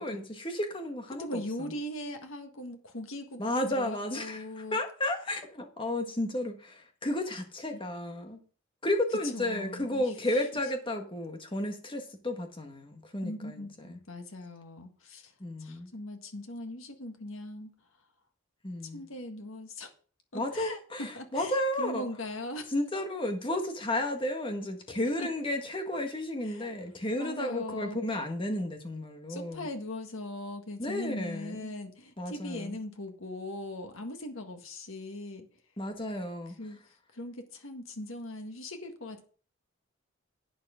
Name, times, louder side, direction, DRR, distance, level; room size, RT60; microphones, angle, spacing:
voice 1, 0.0-1.3 3.4-4.4 4.7-8.4 8.8-14.0 15.4-15.9 18.6-19.0 20.3-22.0 22.7-29.7 30.8-31.7 32.2-32.8 35.8-36.5, left 1 dB, 25° left, 1.6 m, -33 dB
voice 2, 1.2-4.8 7.7-7.8 9.3-10.6 13.2-15.3 15.6-17.7 18.8-19.9 20.3-22.7 25.2-25.3 26.4-26.8 27.2-28.0 29.3-35.5 36.5-39.3, left 1 dB, 85° left, 1.7 m, -40 dB
11.0 x 8.8 x 3.8 m
head